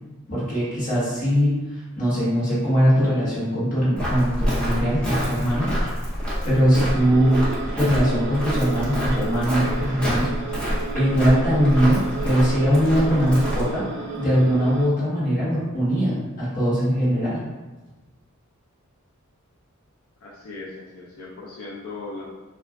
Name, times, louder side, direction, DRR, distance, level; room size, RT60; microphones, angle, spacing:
voice 1, 0.3-1.6 2.0-5.7 6.4-7.5 7.7-10.3 10.9-13.8 14.2-17.4, equal, 40° left, -9 dB, 1.2 m, -21 dB
Walk footsteps, 4.0-13.7, equal, 5° left, 0.5 m, -27 dB
sound 1, 6.8-14.9, right 4 dB, 55° right, 0.3 m, -34 dB
voice 2, 20.2-22.3, left 3 dB, 75° left, -5 dB, 0.4 m, -38 dB
2.3 x 2.2 x 3.4 m, 1.2 s
head